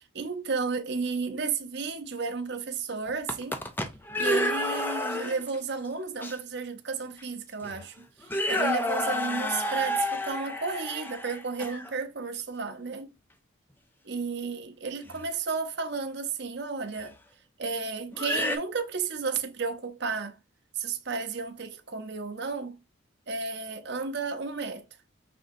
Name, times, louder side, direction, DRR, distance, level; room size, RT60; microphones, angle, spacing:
voice 1, 0.0-3.6 4.2-13.1 14.1-17.2 17.6-20.4 20.7-22.8 23.3-24.8, right 4 dB, 55° right, 0.7 m, -33 dB
sound 1, 3.1-5.6 6.2-6.3 7.2-7.3 7.6-7.8 8.2-11.9 15.1-15.2 17.0-17.1 18.1-18.6, left 1 dB, 10° left, 0.4 m, -30 dB
5.2 x 3.4 x 2.6 m
head